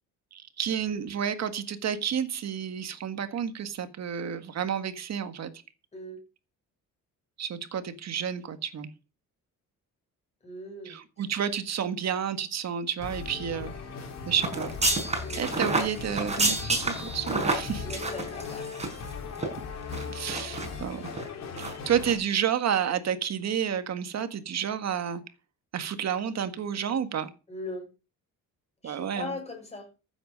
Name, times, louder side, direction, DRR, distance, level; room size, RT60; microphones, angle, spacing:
voice 1, 0.3-5.5 7.4-8.9 10.8-13.7 14.3-14.7 15.4-17.9 20.1-21.0 21.6-25.2 25.7-27.3 28.8-29.4, right 8 dB, 50° right, 10 dB, 1.7 m, -30 dB
voice 2, 10.4-11.0 15.2-15.4 17.8-18.8 27.5-27.9 28.8-29.9, left 2 dB, 20° left, 2 dB, 6.5 m, -39 dB
sound 1, 13.0-22.2, left 5 dB, 50° left, 4.1 m, -38 dB
sound 2, 14.4-19.1 19.4-19.5 19.9-20.7 21.1-21.2 21.6-21.8 22.0-22.2, right 2 dB, 20° right, 5.0 m, -29 dB
14.5 x 8.1 x 5.3 m, 0.32 s
cardioid pair, 145°, 33 cm